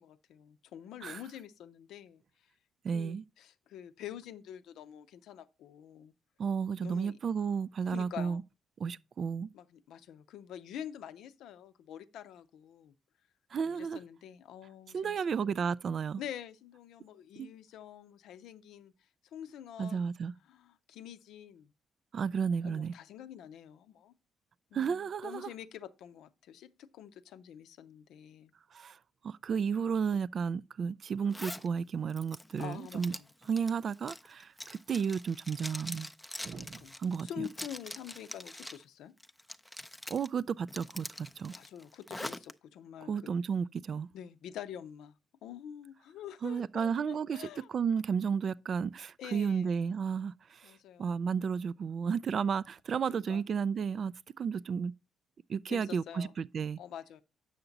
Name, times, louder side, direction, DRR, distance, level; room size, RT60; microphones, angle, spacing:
voice 1, 0.0-2.5 2.9-6.1 6.8-7.2 7.9-8.4 9.5-12.9 13.7-15.2 16.2-20.1 20.5-21.7 22.6-24.1 24.7-28.5 32.6-33.3 36.5-39.1 41.5-43.3 44.1-45.1 45.4-47.7 49.2-49.7 50.6-51.2 52.9-53.4 55.7-56.4 56.8-57.2, left 10 dB, 80° left, 0.6 m, -47 dB
voice 2, 2.8-3.2 6.4-8.4 8.8-9.5 13.5-14.0 14.9-16.2 17.4-17.5 19.8-20.3 22.1-22.9 24.7-25.5 28.7-29.0 29.2-33.1 33.5-36.1 36.4-37.4 40.1-41.5 43.1-44.1 46.4-50.7 51.0-54.9 55.5-56.8, right 6 dB, 55° right, 0.3 m, -33 dB
Zipper (clothing), 31.3-31.7 32.1-38.8 39.2-40.3 40.7-42.5, left 1 dB, 5° left, 0.5 m, -44 dB
7.9 x 5.9 x 3.9 m
cardioid pair, 90°, 0 cm